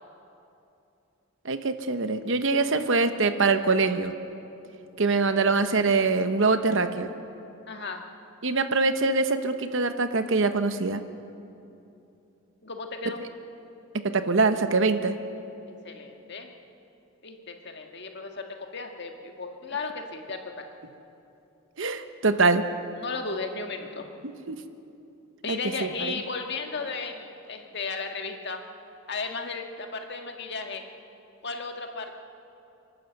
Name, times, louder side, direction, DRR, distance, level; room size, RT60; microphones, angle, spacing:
voice 1, 1.4-4.1 5.0-7.1 8.4-11.0 14.0-15.2 21.8-22.6 24.5-24.6 25.5-26.1, right 3 dB, 60° right, 9 dB, 1.0 m, -24 dB
voice 2, 7.7-8.0 12.6-13.2 15.8-16.5 17.2-20.7 22.9-24.1 25.4-28.6 29.1-30.8 31.4-32.2, left 4 dB, 50° left, 4 dB, 1.7 m, -35 dB
27.5 x 12.0 x 8.0 m, 2.7 s
head